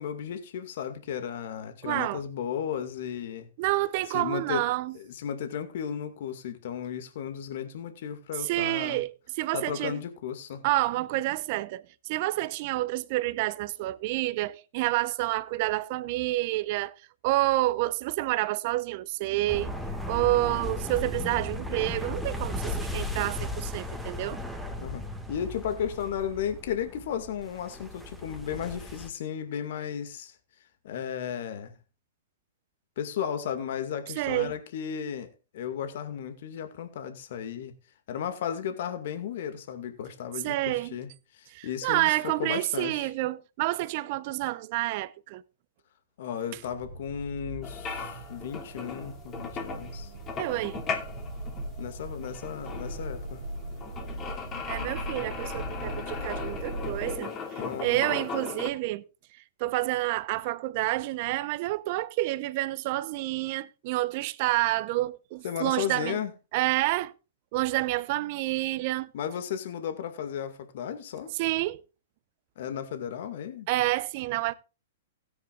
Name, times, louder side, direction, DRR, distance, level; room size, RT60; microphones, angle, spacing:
voice 1, 0.0-3.5 4.1-4.6 4.9-9.0 9.5-10.6 24.8-30.4 30.8-31.7 33.0-37.7 38.1-43.1 46.2-50.1 51.8-53.4 57.6-58.2 65.4-66.3 69.1-71.3 72.6-73.7, left 8 dB, 60° left, 2.1 m, -34 dB
voice 2, 1.8-2.2 3.6-5.0 8.4-10.0 10.6-16.9 17.2-19.7 20.1-24.4 34.2-34.5 40.4-40.9 41.5-45.4 50.4-50.8 54.7-59.0 59.6-66.2 66.5-67.1 67.5-69.1 71.4-71.8 73.7-74.5, right 18 dB, 50° right, 0.9 m, -29 dB
sound 1, 19.5-29.1, left 1 dB, ahead, 1.9 m, -36 dB
Accelerating revving vroom, 46.6-57.2, right 1 dB, 75° right, 2.7 m, -39 dB
sound 2, 47.6-58.7, left 5 dB, 30° left, 2.7 m, -38 dB
17.0 x 9.6 x 2.5 m
hypercardioid pair, 115°, 0 cm